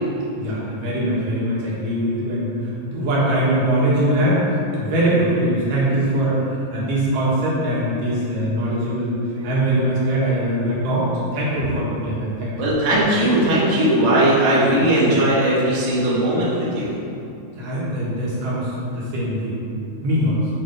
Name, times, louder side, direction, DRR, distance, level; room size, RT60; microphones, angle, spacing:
voice 1, 0.3-2.5 2.8-4.5 4.8-9.1 9.4-12.5 17.6-19.6 20.0-20.4, right 1 dB, 70° right, -7 dB, 2.9 m, -22 dB
voice 2, 12.6-16.9, right 1 dB, 50° right, -9 dB, 1.3 m, -18 dB
7.7 x 3.2 x 5.2 m, 2.6 s
omnidirectional pair, 4.2 m